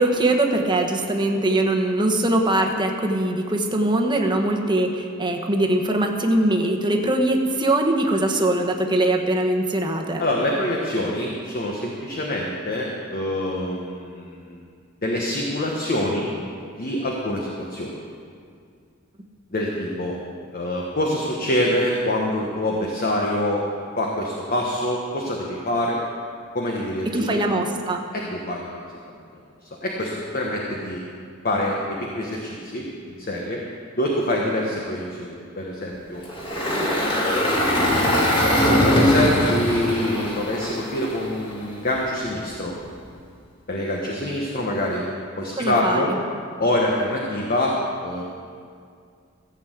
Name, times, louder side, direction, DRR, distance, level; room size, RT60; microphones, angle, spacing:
voice 1, 0.0-10.2 27.1-28.0 45.6-46.1, right 1 dB, 20° right, 3 dB, 1.1 m, -22 dB
voice 2, 10.2-14.6 15.0-16.3 16.8-18.0 19.5-20.1 20.5-23.6 24.0-26.0 26.5-27.4 28.1-28.9 29.3-31.0 31.4-33.6 34.0-36.2 36.6-37.2 38.4-42.7 43.7-45.0 45.4-46.1 46.6-48.2, left 1 dB, 45° left, -2 dB, 1.3 m, -25 dB
Engine, 36.2-41.5, left 1 dB, 25° left, 2.4 m, -21 dB
15.0 x 6.4 x 8.0 m, 2.2 s
head